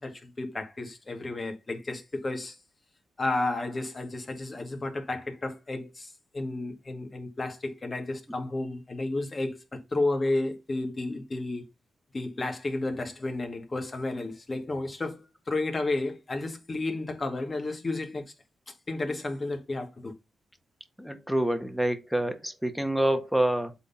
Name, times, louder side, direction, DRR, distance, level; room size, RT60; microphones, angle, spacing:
voice 1, 0.0-2.6 3.2-11.6 12.1-18.2 18.7-20.1, left 2 dB, 35° left, 2.2 m, -32 dB
voice 2, 21.0-23.7, right 1 dB, ahead, 1.6 m, -27 dB
8.0 x 3.9 x 4.3 m
cardioid pair, 60°, 0 cm